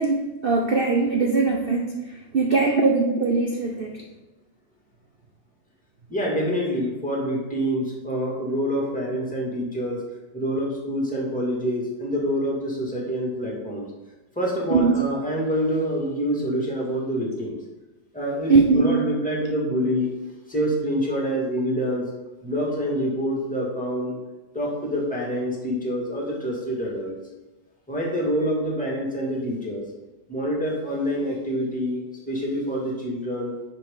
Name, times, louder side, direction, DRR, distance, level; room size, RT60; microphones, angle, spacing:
voice 1, 0.0-4.0 14.7-15.0 18.5-18.9, right 4 dB, 75° right, 2 dB, 0.5 m, -21 dB
voice 2, 6.1-10.0 10.3-13.9 14.4-17.6 18.1-20.1 20.5-22.0 22.4-24.2 24.5-27.2 27.9-29.8 30.3-33.5, equal, 5° left, -4 dB, 2.0 m, -26 dB
9.7 x 5.3 x 3.8 m, 1.2 s
omnidirectional pair, 2.0 m